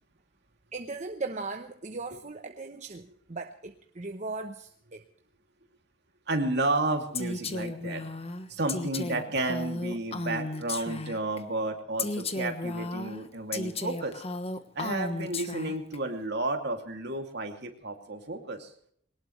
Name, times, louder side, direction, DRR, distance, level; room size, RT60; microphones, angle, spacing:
voice 1, 0.7-5.0, right 3 dB, 40° right, 6 dB, 1.0 m, -38 dB
voice 2, 6.3-8.0 8.5-14.2 14.7-18.7, right 2 dB, 60° right, 4 dB, 2.7 m, -32 dB
Female speech woman speaking, 7.1-11.4 12.0-16.0, left 2 dB, 30° left, 1.3 m, -34 dB
21.5 x 19.0 x 3.3 m, 0.63 s
head